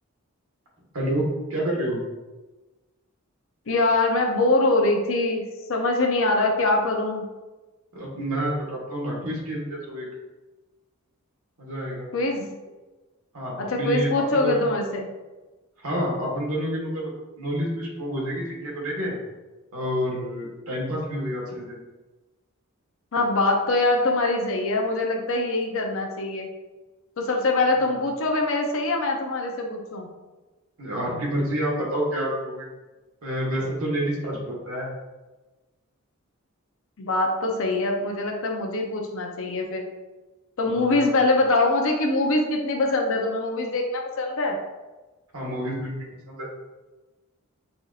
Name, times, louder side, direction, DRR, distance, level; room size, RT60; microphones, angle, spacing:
voice 1, 0.9-2.0 7.9-10.0 11.6-12.1 13.3-14.7 15.8-17.1 17.4-19.1 19.7-21.8 27.9-28.0 30.8-32.7 33.2-34.9 40.6-41.0 45.3-46.5, equal, 75° right, -3 dB, 1.3 m, -28 dB
voice 2, 3.7-5.4 5.7-7.2 12.1-12.6 13.6-15.1 23.1-26.5 27.2-30.1 37.0-39.9 40.6-44.6, left 2 dB, 60° left, 1 dB, 0.6 m, -23 dB
5.7 x 2.6 x 2.4 m, 1.2 s
head